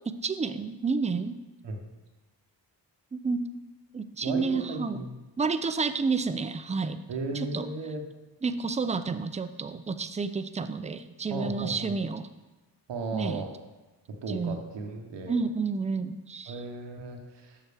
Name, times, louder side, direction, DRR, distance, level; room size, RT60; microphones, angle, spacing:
voice 1, 0.1-1.4 3.1-3.4 3.9-5.0 5.4-7.0 7.3-7.7 8.4-12.3 13.1-13.4 14.3-14.6 15.3-16.6, right 4 dB, 15° right, 10 dB, 0.4 m, -30 dB
voice 2, 4.2-5.1 7.1-8.0 11.3-11.9 12.9-13.5 14.1-15.3 16.5-17.6, right 3 dB, 80° right, 3 dB, 1.0 m, -35 dB
7.1 x 5.8 x 3.4 m, 1.1 s
cardioid pair, 45°, 42 cm